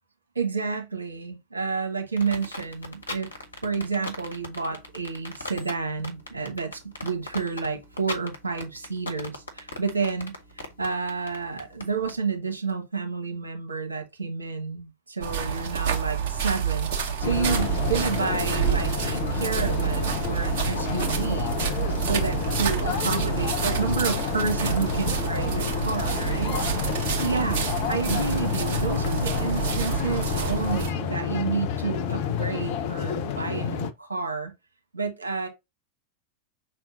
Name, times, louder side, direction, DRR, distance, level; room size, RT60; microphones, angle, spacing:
voice 1, 0.3-3.3 3.6-16.9 17.2-21.6 22.0-34.5 34.9-35.5, right 5 dB, 80° right, 1.4 m, -30 dB
sound 1, 2.2-12.1, left 2 dB, 80° left, 1.3 m, -37 dB
sound 2, 15.2-30.9, right 8 dB, 55° right, 1.6 m, -28 dB
sound 3, 17.2-33.9, left 8 dB, 50° left, 0.7 m, -29 dB
5.7 x 3.5 x 2.7 m
figure-of-eight pair, 85°, 0 cm